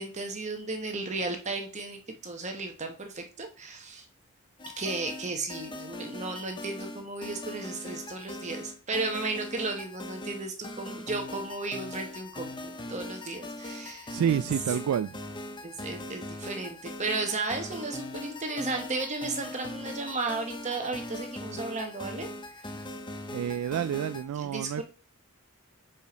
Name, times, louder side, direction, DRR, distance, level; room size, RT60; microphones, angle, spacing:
voice 1, 0.0-4.1 4.8-14.1 15.6-22.7 24.3-24.8, right 3 dB, 30° right, 1.0 m, -34 dB
sound 1, 4.6-24.2, left 1 dB, 20° left, 0.7 m, -41 dB
voice 2, 14.1-15.2 23.3-24.8, right 8 dB, 80° right, 0.3 m, -29 dB
5.3 x 5.0 x 5.0 m
head